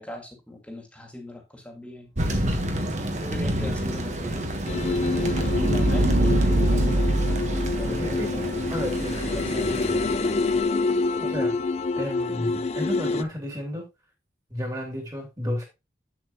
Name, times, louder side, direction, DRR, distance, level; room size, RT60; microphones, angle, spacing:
voice 1, 0.0-2.1 3.1-4.5 5.1-7.2 7.7-8.6 8.9-9.8 10.9-11.1, left 1 dB, 5° left, 3 dB, 1.9 m, -40 dB
Thunder, 2.2-10.7, right 1 dB, 40° right, 1.4 m, -31 dB
voice 2, 2.3-2.6 8.0-8.3 8.7-9.2 11.2-11.5 12.0-13.9 14.5-15.7, equal, 20° right, 2 dB, 2.8 m, -32 dB
sound 1, 3.4-10.2, right 1 dB, 80° right, 1.1 m, -26 dB
sound 2, 4.7-13.2, left 3 dB, 40° left, 0.4 m, -27 dB
7.8 x 7.4 x 3.0 m, 0.25 s
head